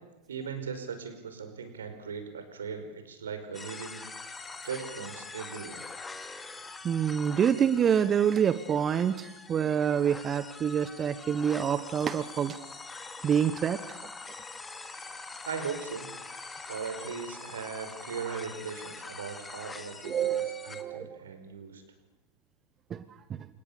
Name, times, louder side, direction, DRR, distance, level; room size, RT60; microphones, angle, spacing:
voice 1, 0.3-4.0 4.6-5.8 15.4-16.1 16.7-21.8, right 6 dB, 65° right, 8 dB, 5.2 m, -39 dB
sound 1, 3.5-20.8, left 3 dB, 15° left, 2.5 m, -44 dB
voice 2, 6.8-12.6 13.2-13.8 20.0-20.5 20.7-21.2 22.9-23.5, right 8 dB, 25° right, 12 dB, 1.2 m, -27 dB
29.0 x 27.5 x 6.9 m, 1.1 s
figure-of-eight pair, 90°, 0 cm